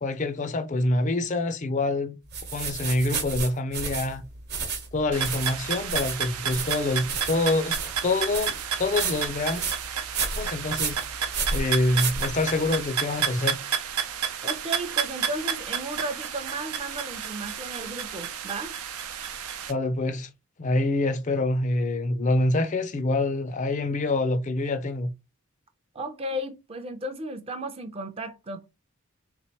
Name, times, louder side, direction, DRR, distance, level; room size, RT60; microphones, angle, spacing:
voice 1, 0.0-2.2 2.5-4.2 4.9-9.6 10.4-11.0 11.5-13.6 19.7-20.3 20.6-25.1, left 2 dB, 35° left, 0.4 m, -26 dB
sound 1, 2.3-12.8, right 5 dB, 45° right, 1.0 m, -32 dB
sound 2, 5.1-19.7, right 8 dB, 80° right, 0.6 m, -31 dB
voice 2, 14.4-18.8 25.9-28.6, right 1 dB, 25° right, 0.5 m, -34 dB
3.7 x 3.1 x 2.9 m
head